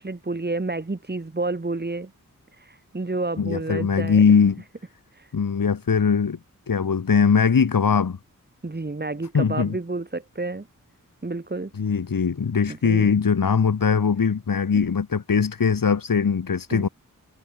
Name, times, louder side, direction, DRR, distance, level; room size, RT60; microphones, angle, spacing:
voice 1, 0.0-2.1 2.6-4.2 5.1-5.3 8.6-10.7 11.2-11.7 12.7-13.1 16.7-16.9, right 2 dB, 30° right, 6.4 m, -30 dB
voice 2, 3.4-4.6 5.3-6.4 6.7-8.2 9.3-9.8 11.7-16.9, left 6 dB, 85° left, 4.6 m, -21 dB
wide cardioid pair, 120°, 33 cm